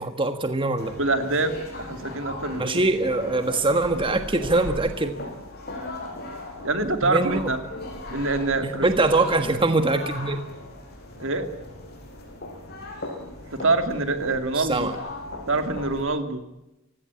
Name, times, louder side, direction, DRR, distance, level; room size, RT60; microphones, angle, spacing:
voice 1, 0.0-0.9 2.6-5.1 7.0-7.5 8.6-10.4 14.5-14.9, right 2 dB, 25° right, 7 dB, 1.5 m, -23 dB
sound 1, 0.8-16.0, left 2 dB, 45° left, 7.5 m, -38 dB
voice 2, 1.0-2.7 6.6-7.6 8.1-8.9 11.2-11.5 13.5-14.9 15.5-16.4, right 3 dB, 60° right, 8 dB, 2.6 m, -25 dB
29.5 x 17.0 x 8.4 m, 0.96 s
head